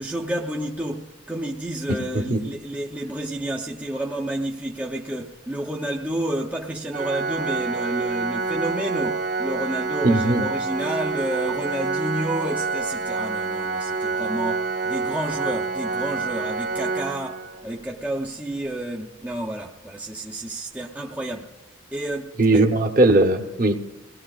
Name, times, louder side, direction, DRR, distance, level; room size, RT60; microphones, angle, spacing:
voice 1, 0.0-21.5 21.9-22.6, right 1 dB, 5° right, 0.6 m, -30 dB
voice 2, 1.9-2.4 10.0-10.4 22.4-23.8, right 2 dB, 40° right, 1.0 m, -19 dB
Organ, 6.9-17.8, right 4 dB, 75° right, 2.1 m, -27 dB
24.0 x 19.0 x 2.4 m
head